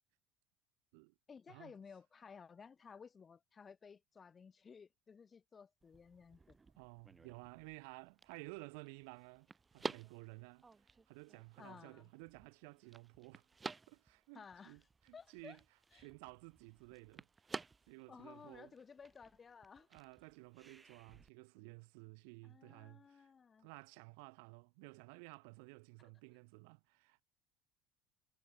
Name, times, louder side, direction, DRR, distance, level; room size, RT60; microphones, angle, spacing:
voice 1, 1.3-6.6 11.6-12.1 14.3-14.8 15.1-15.6 15.9-16.1 18.1-19.9 22.4-23.7, left 6 dB, 35° left, 1.9 m, -56 dB
sound 1, 5.8-21.3, right 4 dB, 25° right, 2.0 m, -53 dB
voice 2, 6.8-9.5 9.7-13.5 13.9-15.6 16.0-17.3 17.9-18.7 19.9-23.3 23.6-27.2, right 34 dB, 70° right, 1.1 m, -55 dB
hypercardioid pair, 65°, 0 cm